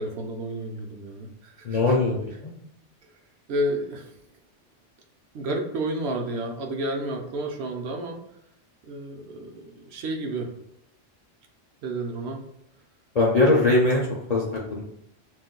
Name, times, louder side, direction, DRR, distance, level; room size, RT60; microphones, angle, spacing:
voice 1, 0.0-2.0 3.0-3.1 3.5-4.1 5.3-8.2 8.8-10.5 11.8-12.4, right 1 dB, 70° right, 2 dB, 0.8 m, -31 dB
voice 2, 1.6-2.2 2.4-2.5 13.1-14.4 14.7-14.8, left 2 dB, 55° left, -3 dB, 0.4 m, -21 dB
2.5 x 2.1 x 3.6 m, 0.76 s
omnidirectional pair, 1.2 m